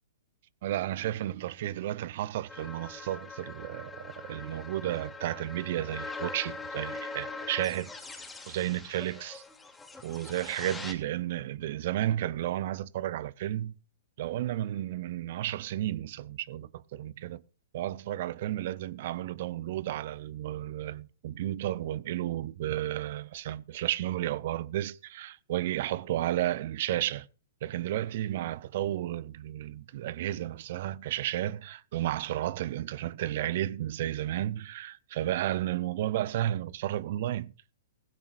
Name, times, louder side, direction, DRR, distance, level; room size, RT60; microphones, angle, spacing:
voice 1, 0.6-7.9 8.5-9.4 10.0-13.8 14.2-17.4 17.7-27.3 27.6-37.5, right 13 dB, 55° right, 0.7 m, -32 dB
sound 1, 2.5-10.9, left 3 dB, 10° left, 2.7 m, -42 dB
16.0 x 16.0 x 2.5 m
hypercardioid pair, 115°, 0 cm